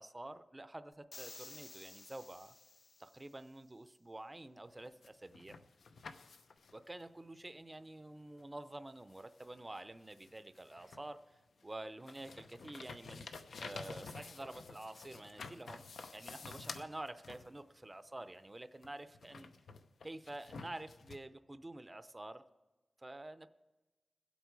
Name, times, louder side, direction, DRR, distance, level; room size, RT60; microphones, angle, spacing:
voice 1, 0.0-2.5 3.0-5.6 6.7-13.3 13.5-19.5 20.0-22.4 23.0-23.5, right 1 dB, 20° right, 12 dB, 0.5 m, -49 dB
sound 1, 1.1-3.4, left 3 dB, 35° left, 0.5 m, -54 dB
sound 2, 4.8-6.8 8.4-8.5 9.1-11.2 11.6-17.8 18.8-21.2, left 4 dB, 85° left, 0.8 m, -50 dB
22.5 x 8.2 x 4.7 m, 1.2 s
wide cardioid pair, 95°, 0 cm